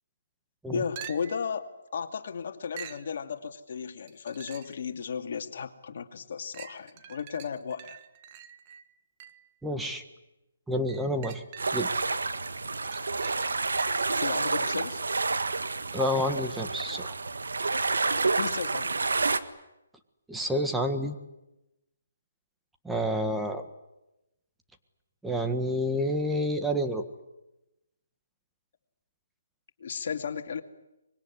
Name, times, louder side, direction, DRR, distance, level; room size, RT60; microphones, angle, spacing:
voice 1, 0.7-1.7 1.9-8.0 14.2-15.0 18.4-18.9 29.8-30.6, left 6 dB, 55° left, 6 dB, 2.5 m, -34 dB
sound 1, 1.0-1.5 2.8-3.1 4.1-4.8 5.4-5.5 6.5-9.5 10.9-12.1 12.5-14.2 18.0-18.1, right 10 dB, 30° right, 1.5 m, -46 dB
voice 2, 9.6-10.0 10.7-11.4 11.7-11.9 15.9-17.1 20.3-21.1 22.8-23.6 25.2-27.0, equal, 5° right, 5 dB, 1.7 m, -29 dB
sound 2, 11.6-19.4, right 3 dB, 85° right, 1.7 m, -29 dB
24.5 x 21.5 x 9.9 m, 0.94 s
hypercardioid pair, 155°, 0 cm